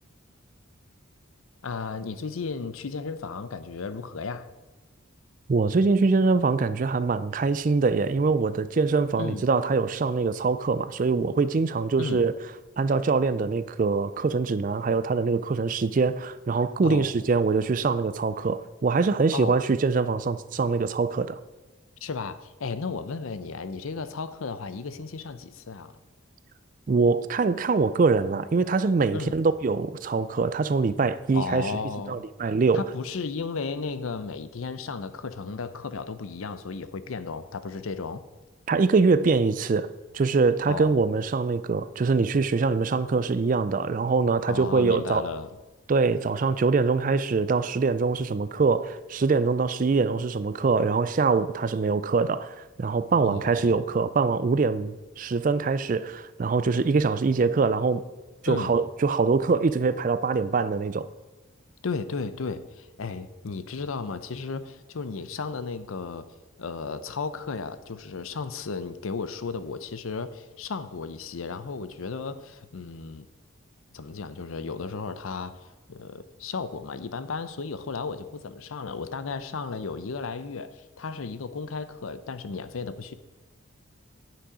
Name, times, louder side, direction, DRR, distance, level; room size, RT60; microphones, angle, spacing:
voice 1, 1.6-4.5 9.2-9.5 12.0-12.3 16.8-17.1 19.3-19.6 22.0-26.0 29.1-29.4 31.3-32.2 32.7-38.2 40.7-41.0 44.5-45.5 53.2-53.8 58.5-58.7 61.8-66.3 66.6-73.3 73.9-75.6 75.9-83.1, left 4 dB, 80° left, 0.6 m, -34 dB
voice 2, 5.5-12.3 12.8-21.4 26.9-31.7 32.1-32.8 38.7-39.9 40.1-45.3 45.9-58.0 58.4-61.1, right 4 dB, 40° right, 0.3 m, -24 dB
9.8 x 6.1 x 4.9 m
head